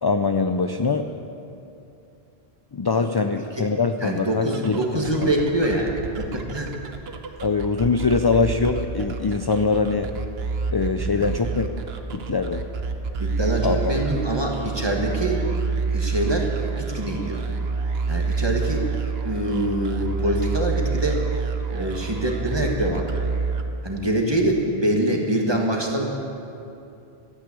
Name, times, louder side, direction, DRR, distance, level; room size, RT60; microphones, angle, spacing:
voice 1, 0.0-1.1 2.7-5.3 7.4-10.2 10.7-11.7 12.1-12.6 13.6-13.9, left 4 dB, 40° left, 7 dB, 0.3 m, -23 dB
voice 2, 4.0-6.7 11.1-11.3 13.2-15.4 15.9-17.4 18.1-18.8 19.2-21.2 21.7-23.2 23.8-26.1, right 1 dB, 25° right, 0 dB, 1.7 m, -24 dB
sound 1, 4.5-24.2, right 5 dB, 75° right, 1.1 m, -28 dB
14.0 x 9.0 x 8.5 m, 2.7 s
omnidirectional pair, 1.1 m